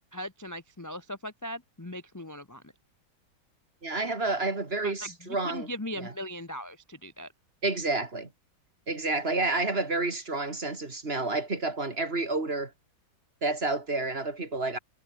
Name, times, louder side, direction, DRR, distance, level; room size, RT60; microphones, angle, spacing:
voice 1, 0.1-2.7 4.8-7.3, equal, 15° left, 0.7 m, -39 dB
voice 2, 3.8-5.7 6.0-6.1 7.6-8.3 8.9-12.7 13.4-14.8, right 3 dB, 30° right, 2.9 m, -29 dB
omnidirectional pair, 2.2 m